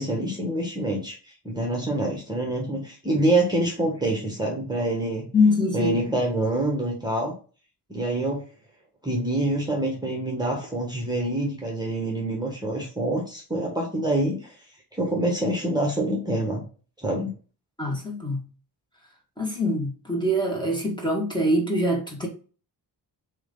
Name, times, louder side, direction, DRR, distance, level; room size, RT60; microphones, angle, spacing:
voice 1, 0.0-5.3 5.7-7.3 7.9-8.4 9.0-14.6 14.9-16.7 17.0-17.3, right 1 dB, 10° right, 1.6 m, -26 dB
voice 2, 5.3-6.2 17.8-18.5 19.4-22.3, left 1 dB, 10° left, 1.9 m, -24 dB
7.8 x 3.3 x 3.9 m
wide cardioid pair, 115°, 40 cm